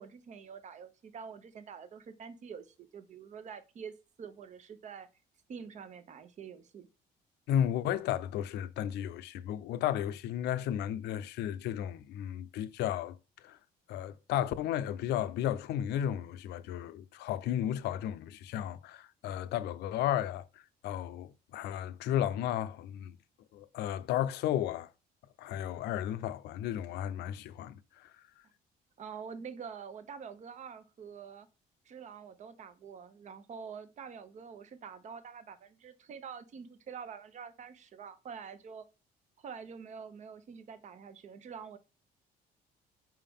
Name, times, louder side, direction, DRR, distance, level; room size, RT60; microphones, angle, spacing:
voice 1, 0.0-5.1 5.5-6.9 29.0-31.5 31.8-38.9 39.4-41.8, right 6 dB, 45° right, 0.8 m, -46 dB
voice 2, 7.5-13.6 13.9-23.2 23.5-24.9 25.4-28.1, left 11 dB, 80° left, 0.6 m, -34 dB
5.6 x 4.7 x 3.6 m
cardioid pair, 110°, 17 cm